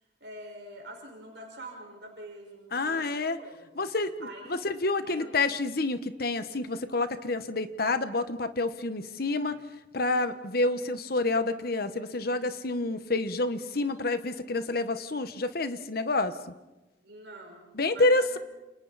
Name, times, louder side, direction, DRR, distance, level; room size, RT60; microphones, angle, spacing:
voice 1, 0.2-3.7 4.2-4.6 5.0-5.4 17.0-17.6 17.9-18.4, right 1 dB, 65° right, 0 dB, 5.3 m, -45 dB
voice 2, 2.7-3.4 3.7-4.1 4.5-9.6 9.9-16.4 17.7-18.4, left 2 dB, 55° left, 11 dB, 1.2 m, -28 dB
29.5 x 29.0 x 4.2 m, 1.0 s
head